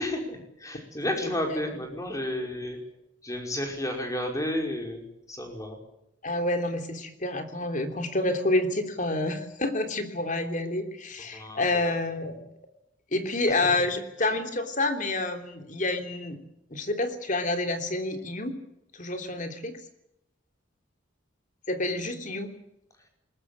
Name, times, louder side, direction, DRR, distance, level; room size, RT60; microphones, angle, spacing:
voice 1, 0.0-2.8 3.2-5.8 11.3-11.9 13.5-13.7 14.2-14.3, left 1 dB, 15° left, 3 dB, 5.4 m, -32 dB
voice 2, 1.2-1.7 6.2-12.4 13.1-16.4 16.7-18.6 19.0-19.8 21.7-22.5, left 2 dB, 40° left, 7 dB, 3.3 m, -28 dB
21.5 x 20.5 x 8.8 m, 0.82 s
head